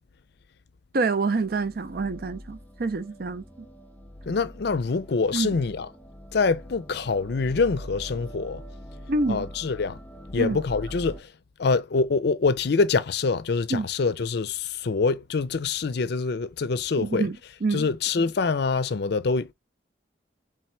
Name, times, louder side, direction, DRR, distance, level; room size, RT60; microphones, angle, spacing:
voice 1, 0.9-3.4 5.3-5.6 9.1-9.4 10.4-10.6 13.7-13.9 17.0-17.9, right 3 dB, 50° right, 0.5 m, -27 dB
sound 1, 1.3-11.2, equal, 10° left, 0.5 m, -43 dB
voice 2, 4.3-5.9 6.3-8.6 9.3-10.0 10.3-11.3 11.6-17.3 17.7-19.5, left 4 dB, 55° left, 0.5 m, -25 dB
4.3 x 3.3 x 3.3 m
head